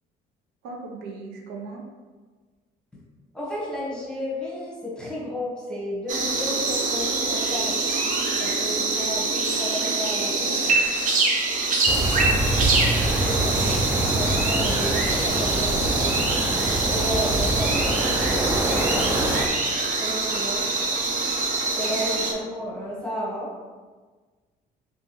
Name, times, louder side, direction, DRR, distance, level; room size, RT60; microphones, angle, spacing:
voice 1, 0.6-1.8 10.4-10.9 13.6-14.1 22.1-22.4, right 3 dB, 90° right, 1 dB, 0.6 m, -39 dB
voice 2, 3.3-7.8 8.4-10.6 13.2-16.1 16.9-18.4 20.0-20.7 21.8-23.5, equal, 5° left, -5 dB, 1.1 m, -32 dB
sound 1, 6.1-22.3, right 3 dB, 50° right, 0.6 m, -25 dB
sound 2, 11.9-19.5, right 1 dB, 10° right, 0.4 m, -25 dB
3.5 x 2.7 x 2.9 m, 1.4 s
cardioid pair, 110°, 17 cm